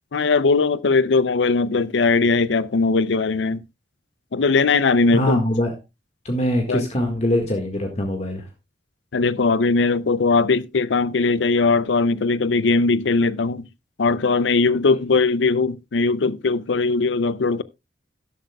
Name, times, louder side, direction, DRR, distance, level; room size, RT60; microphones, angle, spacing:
voice 1, 0.1-3.6 4.3-5.4 6.7-6.8 9.1-13.7 14.0-17.6, left 4 dB, 85° left, 0.6 m, -19 dB
voice 2, 5.1-5.7 6.3-8.4, left 1 dB, 40° left, 1.7 m, -22 dB
13.0 x 11.5 x 2.3 m
head